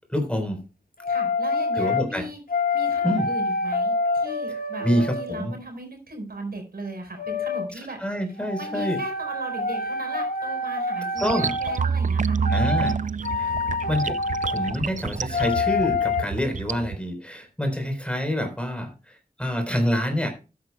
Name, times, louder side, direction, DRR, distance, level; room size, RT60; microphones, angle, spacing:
voice 1, 0.1-0.6 1.8-2.2 3.0-3.3 4.8-5.5 8.0-9.0 11.2-11.5 12.5-13.0 13.3-13.5 13.9-14.2 14.4-20.3, equal, 5° left, 6 dB, 4.0 m, -26 dB
sound 1, 1.0-2.1 2.5-5.6 7.2-7.7 8.4-11.8 12.4-13.0 13.2-14.7 15.3-16.2, left 3 dB, 65° left, 1.5 m, -27 dB
voice 2, 1.1-2.4 2.7-8.0 8.3-12.4, right 2 dB, 75° right, 4 dB, 4.5 m, -37 dB
sound 2, 11.2-17.0, right 6 dB, 50° right, 0.4 m, -28 dB
13.0 x 9.7 x 2.2 m, 0.31 s
cardioid pair, 45°, 16 cm